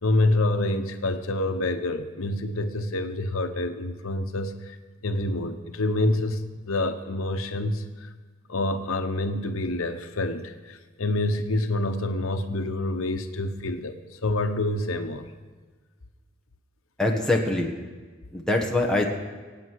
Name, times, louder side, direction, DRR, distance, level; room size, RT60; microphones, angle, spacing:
voice 1, 0.0-4.8 5.0-8.1 8.5-13.9 14.2-15.3, left 2 dB, 85° left, 7 dB, 1.0 m, -27 dB
voice 2, 17.0-17.7 18.3-19.1, left 2 dB, 5° left, -1 dB, 1.5 m, -23 dB
24.5 x 8.8 x 4.8 m, 1.4 s
head